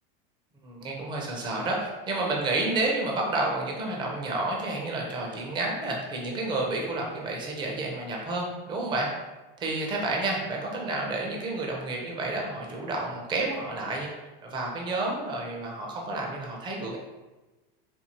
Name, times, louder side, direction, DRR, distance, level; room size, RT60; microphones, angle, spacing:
voice 1, 0.6-9.1 9.6-14.1 14.4-17.0, right 2 dB, 15° right, -1 dB, 0.4 m, -30 dB
4.3 x 2.4 x 2.8 m, 1.1 s
supercardioid pair, 155°, 30 cm